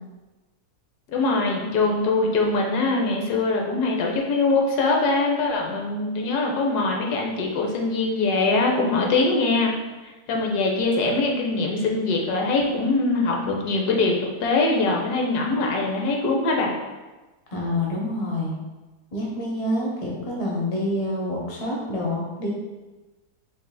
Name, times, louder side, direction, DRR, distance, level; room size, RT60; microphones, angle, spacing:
voice 1, 1.1-9.7 10.3-16.7, left 3 dB, 75° left, 0 dB, 1.2 m, -22 dB
voice 2, 17.5-18.5 19.1-22.5, left 1 dB, 30° left, -2 dB, 0.6 m, -27 dB
5.6 x 3.3 x 2.2 m, 1.2 s
omnidirectional pair, 1.7 m